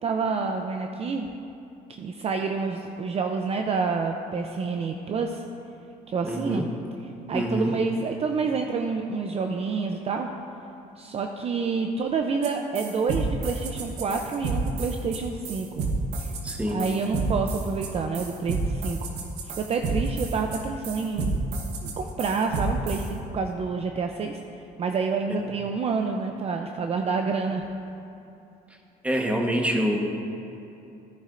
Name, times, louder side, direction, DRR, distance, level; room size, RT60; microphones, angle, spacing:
voice 1, 0.0-1.3 1.9-5.4 6.1-6.6 7.0-10.3 11.0-15.9 16.2-16.3 16.7-19.0 19.5-21.4 21.8-27.7, right 4 dB, 35° right, 4 dB, 0.5 m, -28 dB
voice 2, 6.2-6.7 7.3-7.7 16.4-16.8 29.0-30.0, equal, 5° right, 1 dB, 1.2 m, -26 dB
sound 1, 12.4-12.5 12.7-23.1, right 3 dB, 80° right, 1.3 m, -30 dB
14.0 x 9.8 x 2.6 m, 2.8 s
cardioid pair, 110°, 17 cm